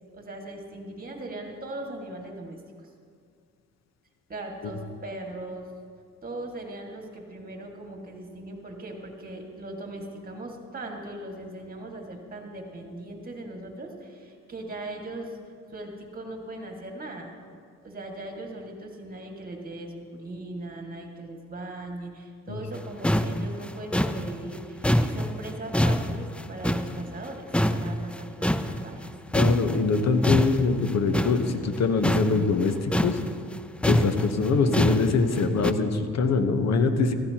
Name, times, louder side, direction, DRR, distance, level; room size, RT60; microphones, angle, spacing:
voice 1, 0.1-2.9 4.3-5.7 6.2-15.4 15.7-17.3 17.8-29.1, right 1 dB, 30° right, 1 dB, 2.0 m, -39 dB
sound 1, 22.8-22.9 23.0-27.3 27.5-29.1 29.3-35.7, equal, 5° left, 0.4 m, -25 dB
voice 2, 29.3-33.2 33.8-37.1, left 4 dB, 60° left, 8 dB, 1.1 m, -23 dB
15.5 x 13.5 x 2.9 m, 2.1 s
cardioid pair, 90°, 30 cm